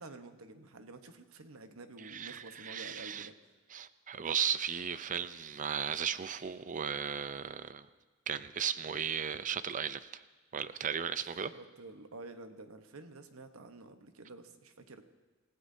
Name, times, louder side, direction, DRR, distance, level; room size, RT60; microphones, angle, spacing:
voice 1, 0.0-3.3 11.5-15.0, right 2 dB, 90° right, 8 dB, 1.1 m, -50 dB
voice 2, 2.0-3.3 3.7-7.9 8.3-10.2 10.5-11.5, right 8 dB, 40° right, 13 dB, 0.5 m, -36 dB
28.0 x 15.5 x 2.7 m, 1.3 s
head